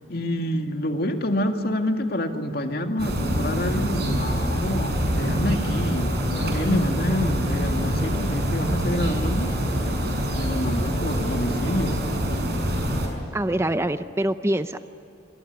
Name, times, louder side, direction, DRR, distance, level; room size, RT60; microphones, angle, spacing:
voice 1, 0.1-9.5 10.3-12.0, left 1 dB, 55° left, 4 dB, 2.2 m, -27 dB
sound 1, 3.0-13.1, equal, 60° right, 6.1 m, -25 dB
voice 2, 13.3-14.9, right 1 dB, 15° right, 10 dB, 0.6 m, -25 dB
26.5 x 22.0 x 9.8 m, 2.8 s
head